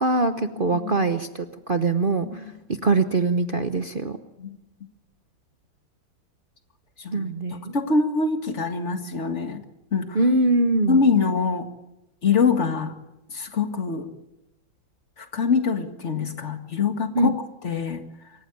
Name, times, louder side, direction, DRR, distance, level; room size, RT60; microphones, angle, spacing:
voice 1, 0.0-2.4 2.8-4.2 7.1-7.7 10.1-11.0 17.1-17.3, right 2 dB, 40° right, 8 dB, 0.7 m, -23 dB
voice 2, 7.0-9.6 9.9-10.2 10.9-11.7 12.2-12.9 13.3-14.1 15.2-17.3 17.6-18.0, left 5 dB, 35° left, 7 dB, 2.1 m, -24 dB
25.5 x 14.5 x 9.4 m, 0.95 s
omnidirectional pair, 2.1 m